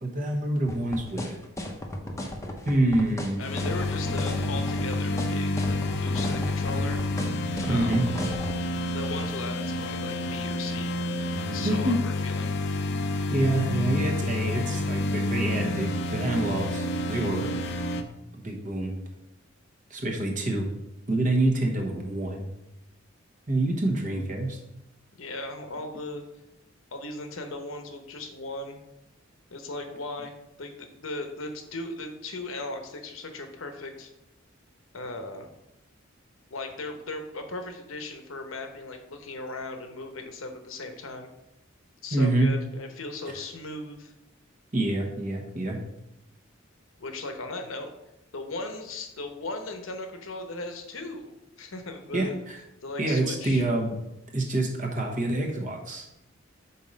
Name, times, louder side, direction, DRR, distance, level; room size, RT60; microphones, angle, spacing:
voice 1, 0.0-1.4 2.6-3.4 7.7-8.0 11.6-12.0 13.3-17.5 18.3-18.9 19.9-20.7 21.1-22.5 23.5-24.6 42.1-42.5 44.7-45.8 52.1-52.6 53.0-54.0 54.3-56.1, right 2 dB, 40° right, 2 dB, 1.1 m, -26 dB
sound 1, 0.7-8.6, left 1 dB, 15° left, 0.7 m, -34 dB
voice 2, 3.4-7.0 7.7-8.0 8.9-10.9 11.5-12.6 25.1-26.2 26.9-28.8 29.5-30.3 30.6-34.1 34.9-35.5 36.5-41.3 42.0-44.1 47.0-47.9 48.3-52.4 52.8-53.7, left 2 dB, 85° left, 5 dB, 0.9 m, -37 dB
sound 2, 3.4-18.0, left 1 dB, 55° left, 0.5 m, -29 dB
5.4 x 4.2 x 5.1 m, 0.88 s
head